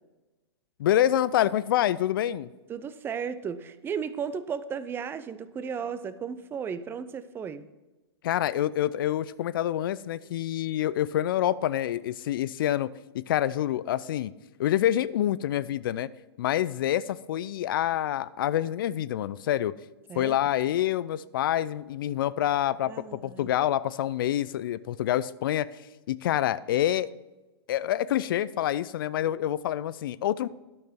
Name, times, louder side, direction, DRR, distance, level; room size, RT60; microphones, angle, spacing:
voice 1, 0.8-2.5 8.2-14.3 14.6-16.1 16.4-19.7 20.1-25.7 26.1-27.1 27.7-30.5, left 12 dB, 55° left, 18 dB, 0.5 m, -27 dB
voice 2, 2.7-7.7 20.1-20.4 22.9-23.5, right 7 dB, 15° right, 14 dB, 0.5 m, -35 dB
12.0 x 6.7 x 4.3 m, 1.1 s
figure-of-eight pair, 115°, 14 cm